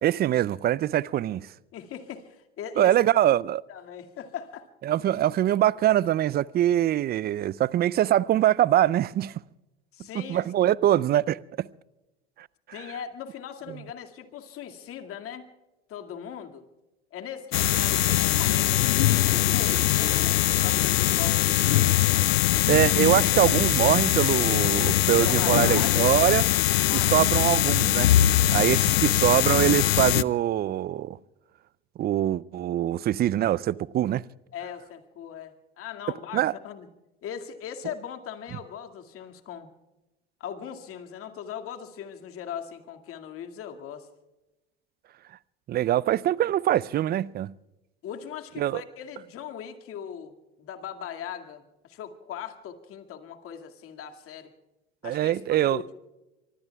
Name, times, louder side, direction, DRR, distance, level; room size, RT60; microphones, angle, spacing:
voice 1, 0.0-1.5 2.8-3.6 4.9-9.4 10.1-11.7 12.4-12.5 22.7-26.5 27.1-28.1 28.5-31.2 32.0-34.2 36.3-36.5 45.7-47.5 48.6-48.8 55.0-55.8, right 12 dB, 30° right, 0.5 m, -23 dB
voice 2, 1.7-3.1 3.7-4.7 9.9-10.8 12.7-15.5 15.9-16.6 17.1-22.1 25.2-25.9 26.9-27.1 34.5-36.9 37.2-39.7 40.4-44.1 48.0-50.3 50.6-54.5 55.0-55.9, left 8 dB, 45° left, 2.2 m, -39 dB
sound 1, 17.5-30.2, left 14 dB, 80° left, 0.5 m, -22 dB
26.0 x 24.0 x 2.3 m
hypercardioid pair, 75°, 30 cm